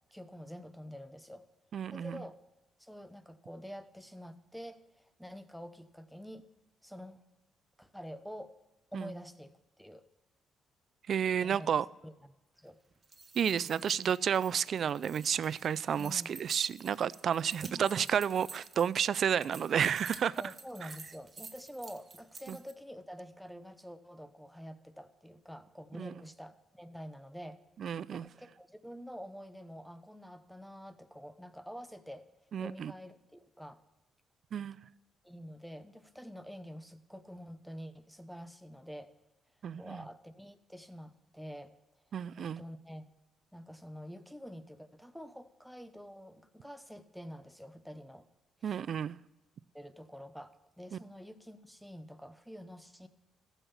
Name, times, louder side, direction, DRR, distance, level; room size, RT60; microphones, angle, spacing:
voice 1, 0.1-1.4 1.9-2.4 2.8-6.4 6.8-7.2 7.8-8.5 8.9-10.0 11.4-11.7 12.0-12.8 16.0-16.3 17.6-17.9 20.4-27.6 28.1-32.3 32.6-33.8 35.2-39.1 39.8-41.7 42.4-43.0 43.5-48.3 48.6-48.8 49.7-53.1, equal, ahead, 0.8 m, -47 dB
voice 2, 1.7-2.2 8.9-9.1 11.1-11.9 13.4-20.3 22.5-22.6 26.0-26.1 27.8-28.3 32.5-32.9 34.5-34.8 39.6-40.0 42.1-42.6 48.6-49.2 50.9-51.0, right 8 dB, 60° right, 0.3 m, -31 dB
sound 1, 12.9-22.7, right 4 dB, 30° right, 1.1 m, -51 dB
14.0 x 5.6 x 7.1 m
cardioid pair, 90°, 0 cm